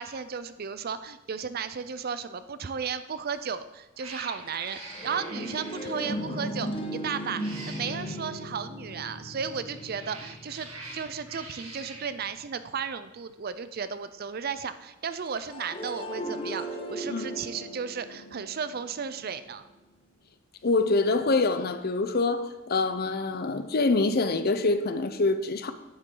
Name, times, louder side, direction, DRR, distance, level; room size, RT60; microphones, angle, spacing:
voice 1, 0.0-19.7, right 6 dB, 45° right, 13 dB, 0.5 m, -34 dB
Cat, 3.3-3.5 4.0-6.0 7.1-8.2 9.5-12.1, right 3 dB, 85° right, 2.2 m, -45 dB
sound 1, 4.5-12.1 15.3-19.4, equal, 25° left, 0.9 m, -37 dB
voice 2, 20.6-25.7, left 3 dB, 50° left, 10 dB, 0.6 m, -25 dB
10.0 x 9.5 x 3.8 m, 1.0 s
head